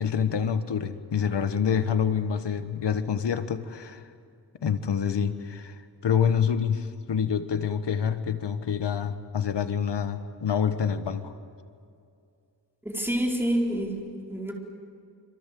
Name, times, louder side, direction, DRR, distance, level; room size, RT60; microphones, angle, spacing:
voice 1, 0.0-4.1 4.6-11.3, left 7 dB, 75° left, 10 dB, 1.4 m, -27 dB
voice 2, 12.8-14.0 14.3-14.5, right 1 dB, 5° right, -1 dB, 4.3 m, -27 dB
26.5 x 26.5 x 7.8 m, 2.4 s
wide cardioid pair, 105°, 42 cm